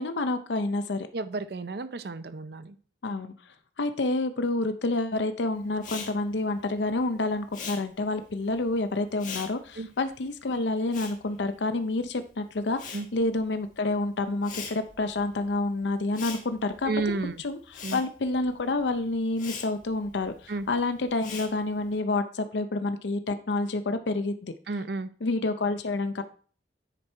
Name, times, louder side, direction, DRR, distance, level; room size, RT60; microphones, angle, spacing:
voice 1, 0.0-1.1 3.0-3.3 3.8-16.9 17.4-17.6 17.9-24.5 25.2-26.2, left 2 dB, 75° left, 9 dB, 0.6 m, -28 dB
voice 2, 1.1-2.8 9.8-9.9 12.9-13.1 16.8-17.4 17.8-18.0 20.5-20.7 24.7-25.1, right 3 dB, 60° right, 13 dB, 0.5 m, -32 dB
Respiratory sounds, 5.8-12.2 12.5-22.0, left 5 dB, 45° left, 1.6 m, -43 dB
9.9 x 4.3 x 4.5 m, 0.43 s
head